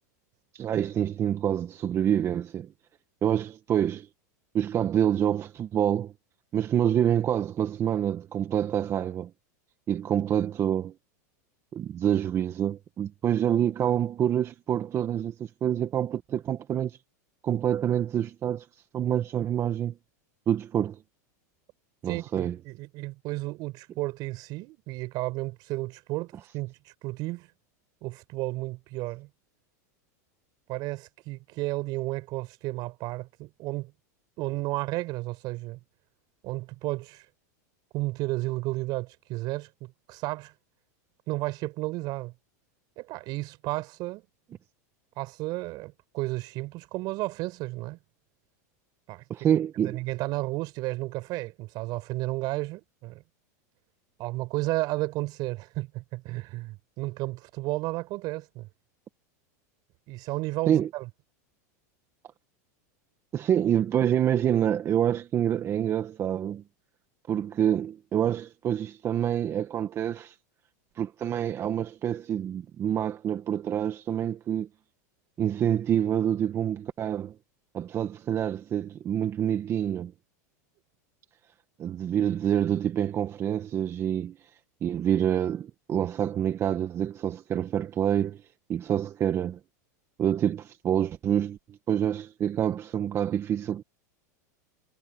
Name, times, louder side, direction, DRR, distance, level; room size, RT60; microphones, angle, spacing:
voice 1, 0.5-2.7 3.2-4.1 4.5-6.1 6.5-9.3 9.9-10.9 11.7-17.0 17.4-19.9 20.5-21.0 22.0-22.6 49.3-50.0 60.7-60.9 63.3-66.6 67.3-70.3 70.9-74.7 75.4-77.3 77.7-80.1 81.8-84.5 84.8-88.4 88.7-89.6 90.2-91.6 91.9-93.8, right 10 dB, 30° right, 1.4 m, -27 dB
voice 2, 22.1-27.5 28.0-29.3 30.7-33.9 34.4-35.8 36.4-37.2 37.9-40.5 41.3-42.3 43.0-44.2 45.2-48.0 49.1-53.2 54.2-58.7 60.1-61.1, right 20 dB, 50° right, 4.5 m, -33 dB
supercardioid pair, 125°, 9 cm